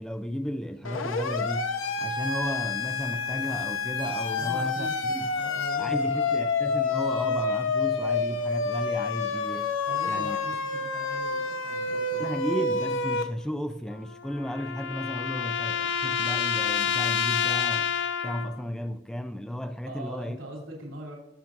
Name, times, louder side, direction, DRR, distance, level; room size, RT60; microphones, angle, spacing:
voice 1, 0.0-5.3 5.8-9.7 10.1-10.4 12.2-17.9 18.2-20.4, equal, 5° left, 0.3 m, -34 dB
Siren, 0.8-13.2, left 4 dB, 80° left, 0.9 m, -28 dB
voice 2, 4.4-5.1 5.4-6.5 9.9-12.4 19.9-21.2, right 1 dB, 80° right, 3.0 m, -42 dB
sound 1, 13.9-18.6, left 7 dB, 60° left, 0.6 m, -28 dB
20.0 x 7.2 x 2.5 m
head